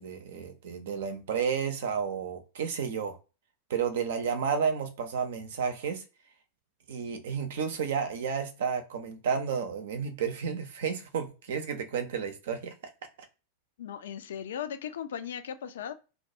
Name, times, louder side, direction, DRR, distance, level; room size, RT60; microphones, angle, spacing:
voice 1, 0.0-3.2 3.7-6.0 6.9-12.7, right 6 dB, 60° right, 0.5 m, -31 dB
voice 2, 13.8-15.9, left 9 dB, 60° left, 0.4 m, -37 dB
2.2 x 2.1 x 2.7 m
figure-of-eight pair, 90°, 0 cm